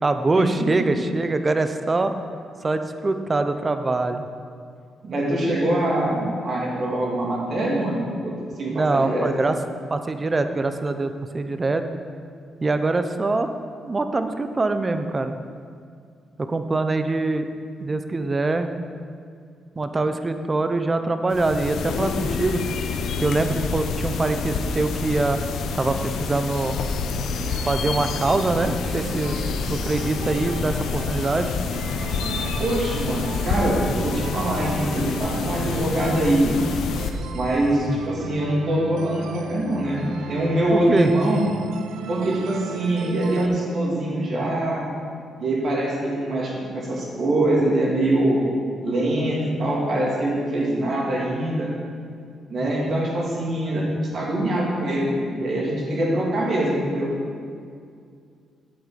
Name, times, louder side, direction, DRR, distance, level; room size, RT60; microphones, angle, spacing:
voice 1, 0.0-2.1 2.6-4.2 8.7-11.9 12.6-13.5 13.8-15.3 16.4-17.5 17.8-18.7 19.8-22.6 23.2-25.4 25.7-26.8 27.7-29.3 29.7-31.5 37.9-38.0 40.7-41.1 52.6-52.7, right 3 dB, 25° right, 8 dB, 0.6 m, -24 dB
voice 2, 5.0-8.3 8.6-9.2 32.6-36.6 37.3-41.4 42.1-44.9 45.4-48.5 48.8-51.7 52.5-53.8 54.1-57.1, right 1 dB, 50° right, -4 dB, 3.0 m, -23 dB
sound 1, 21.3-37.1, left 5 dB, 80° left, 0.8 m, -28 dB
sound 2, 27.5-43.5, right 6 dB, 90° right, 0.6 m, -36 dB
11.0 x 8.0 x 5.2 m, 2.3 s
cardioid pair, 125°, 0 cm